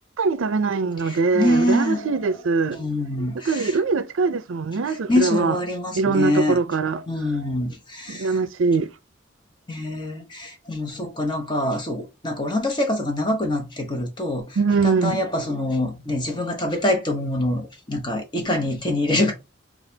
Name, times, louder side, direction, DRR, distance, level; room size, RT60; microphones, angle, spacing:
voice 1, 0.2-2.8 3.5-5.5 6.0-7.0 8.1-8.9 14.6-15.2, right 4 dB, 75° right, 0.5 m, -22 dB
voice 2, 1.0-2.2 2.7-3.8 4.9-6.6 7.1-8.4 9.7-19.3, left 1 dB, 20° left, 0.9 m, -25 dB
6.4 x 2.4 x 2.7 m
head